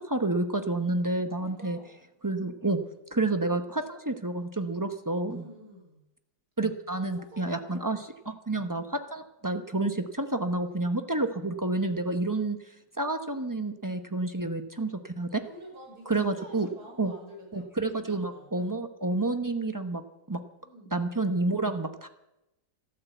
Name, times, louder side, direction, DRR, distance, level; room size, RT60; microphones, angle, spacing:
voice 1, 0.0-1.8 2.2-2.8 3.1-5.4 6.6-12.6 13.0-15.4 16.1-16.7 17.0-17.1 17.5-20.0 20.3-20.4 20.9-22.1, right 2 dB, 20° right, 7 dB, 0.4 m, -29 dB
voice 2, 1.3-1.9 5.3-6.0 7.0-8.0 15.5-18.6 20.6-20.9, equal, 60° right, 0 dB, 6.4 m, -49 dB
13.5 x 12.5 x 7.9 m, 0.92 s
omnidirectional pair, 2.0 m